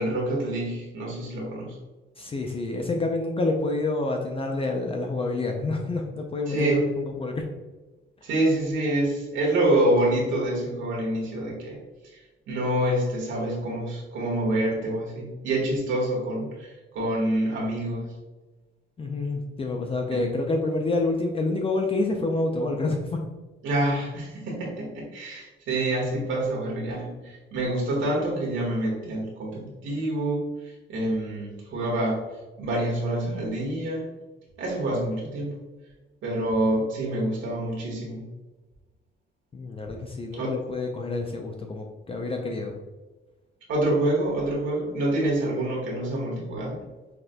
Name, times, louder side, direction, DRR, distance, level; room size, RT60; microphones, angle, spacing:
voice 1, 0.0-1.8 6.5-6.8 8.2-11.8 12.0-12.2 12.5-18.1 20.1-20.3 23.6-32.2 32.6-34.1 34.6-35.6 36.2-38.2 40.3-40.6 43.7-46.8, right 1 dB, 80° right, -3 dB, 1.5 m, -27 dB
voice 2, 2.2-7.4 19.0-23.2 39.5-42.7, left 2 dB, 30° left, 2 dB, 0.4 m, -28 dB
5.8 x 2.5 x 2.2 m, 1.2 s
cardioid pair, 90°, 20 cm